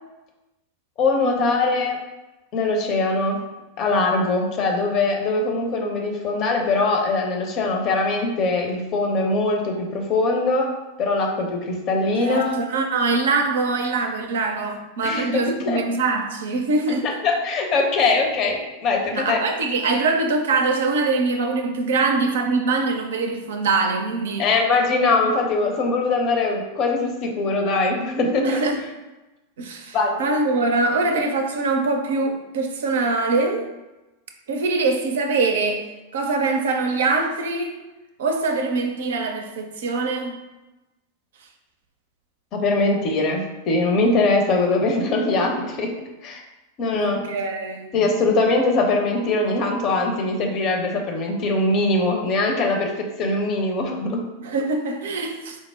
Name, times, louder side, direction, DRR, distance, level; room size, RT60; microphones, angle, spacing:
voice 1, 1.0-2.0 2.5-3.4 3.8-10.7 11.0-12.5 15.0-15.8 17.0-19.4 24.4-28.6 29.9-30.2 42.5-45.9 46.2-46.4 46.8-47.2 47.9-54.2, left 3 dB, 35° left, 2 dB, 0.7 m, -22 dB
voice 2, 12.2-17.1 19.1-24.5 28.4-28.8 29.6-33.7 34.5-35.8 36.1-37.8 38.2-40.4 46.8-47.9 54.4-55.6, right 3 dB, 60° right, 4 dB, 0.4 m, -23 dB
4.2 x 2.0 x 3.5 m, 1.1 s
figure-of-eight pair, 90°, 0 cm